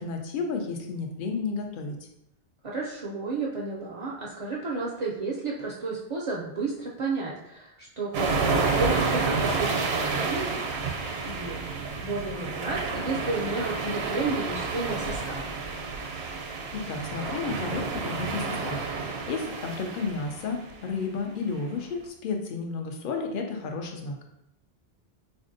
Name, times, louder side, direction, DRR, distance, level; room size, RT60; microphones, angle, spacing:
voice 1, 0.0-2.0 16.7-24.2, left 4 dB, 60° left, 3 dB, 0.7 m, -32 dB
voice 2, 2.6-10.5 11.2-15.5, right 3 dB, 50° right, -4 dB, 0.4 m, -32 dB
sound 1, 8.1-20.7, right 4 dB, 75° right, 0.8 m, -30 dB
4.1 x 2.6 x 2.6 m, 0.81 s
omnidirectional pair, 1.1 m